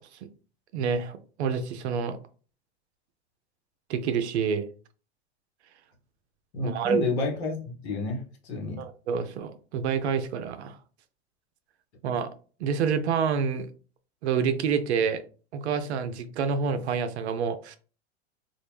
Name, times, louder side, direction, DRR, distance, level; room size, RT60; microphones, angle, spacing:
voice 1, 0.7-2.2 3.9-4.7 6.6-7.0 8.8-10.8 12.0-12.3 12.6-13.7 14.2-15.2 15.5-17.8, right 6 dB, 85° right, 0.5 m, -27 dB
voice 2, 6.5-8.8, left 3 dB, 75° left, 1.1 m, -30 dB
2.4 x 2.0 x 3.1 m
hypercardioid pair, 100°, 32 cm